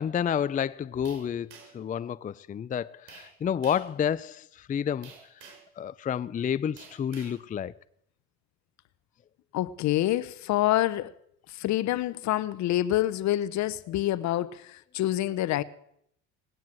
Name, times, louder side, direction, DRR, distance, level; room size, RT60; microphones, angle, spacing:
voice 1, 0.0-1.5 1.7-5.1 5.4-7.7, left 8 dB, 25° left, 0.5 m, -30 dB
sound 1, 1.0-1.9 3.1-3.3 3.6-3.9 5.0-5.7 6.8-7.4, right 6 dB, 80° right, 5.4 m, -49 dB
voice 2, 9.5-11.1 11.5-15.6, left 14 dB, 60° left, 1.0 m, -27 dB
19.5 x 9.3 x 7.6 m
supercardioid pair, 100°, 32 cm